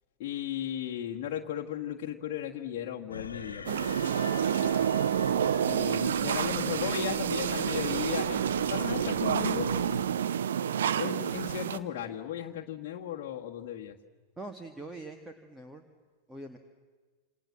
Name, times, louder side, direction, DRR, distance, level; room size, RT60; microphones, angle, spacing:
voice 1, 0.2-4.1 4.4-4.9 5.7-8.4 8.7-9.7 10.9-14.0, left 10 dB, 45° left, -1 dB, 1.6 m, -36 dB
sound 1, 3.1-10.0, left 4 dB, 75° left, 1.2 m, -42 dB
sound 2, 3.7-11.8, right 9 dB, 60° right, 1.0 m, -29 dB
voice 2, 14.4-15.8 16.3-16.6, right 2 dB, 10° right, 6 dB, 1.8 m, -43 dB
28.0 x 27.5 x 7.6 m, 1.4 s
figure-of-eight pair, 90°, 0 cm